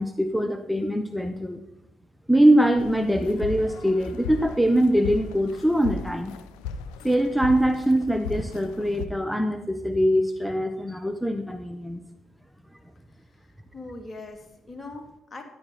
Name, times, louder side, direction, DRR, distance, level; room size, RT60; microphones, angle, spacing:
voice 1, 0.0-1.6 2.3-6.3 7.0-12.0, equal, ahead, 7 dB, 1.2 m, -23 dB
sound 1, 2.8-9.1, left 5 dB, 75° left, 0.7 m, -37 dB
voice 2, 13.1-15.4, left 2 dB, 30° left, 3 dB, 3.1 m, -42 dB
13.5 x 10.5 x 4.4 m, 0.84 s
hypercardioid pair, 45°, 0 cm